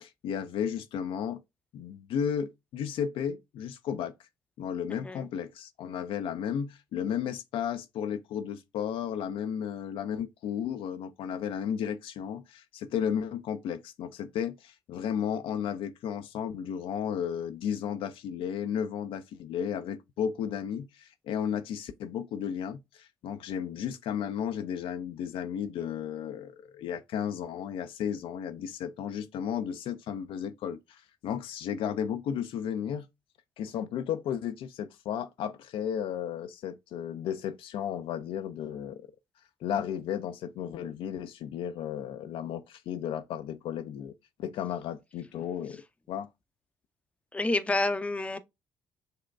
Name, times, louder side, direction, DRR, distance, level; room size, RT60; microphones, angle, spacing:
voice 1, 0.0-1.4 1.7-4.1 4.6-33.1 33.6-39.0 39.6-44.1 44.4-45.8 46.1-46.3, left 8 dB, 55° left, 0.4 m, -34 dB
voice 2, 4.9-5.3 47.3-48.4, left 2 dB, 10° left, 0.6 m, -29 dB
6.5 x 2.2 x 2.2 m
hypercardioid pair, 50°, 11 cm